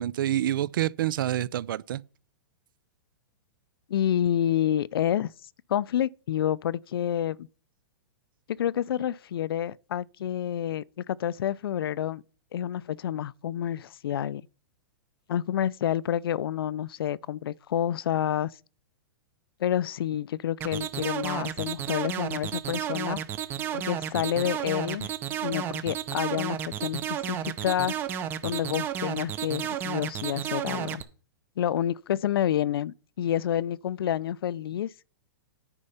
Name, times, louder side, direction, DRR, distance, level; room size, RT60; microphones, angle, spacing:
voice 1, 0.0-2.0, right 12 dB, 65° right, 0.5 m, -27 dB
voice 2, 3.9-5.3 5.7-7.5 8.6-12.2 12.5-14.4 15.3-18.5 19.6-23.2 23.7-25.1 25.4-27.9 28.4-31.0 31.6-34.9, left 10 dB, 80° left, 0.4 m, -28 dB
sound 1, 20.6-31.0, right 9 dB, 15° right, 0.6 m, -32 dB
9.8 x 5.4 x 5.6 m
hypercardioid pair, 165°, 12 cm